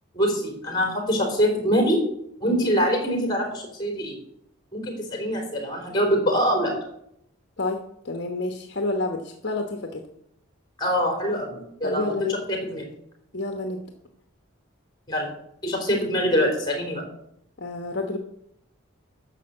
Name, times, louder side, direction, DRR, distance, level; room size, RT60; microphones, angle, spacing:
voice 1, 0.1-2.0 2.4-4.2 4.7-6.7 10.8-12.0 12.3-12.8 15.1-15.3 15.6-17.0, equal, 20° left, 1 dB, 3.6 m, -24 dB
voice 2, 7.6-10.0 11.8-12.4 13.3-13.8 17.6-18.2, left 2 dB, 55° left, 4 dB, 1.1 m, -29 dB
10.5 x 6.8 x 7.6 m, 0.75 s
head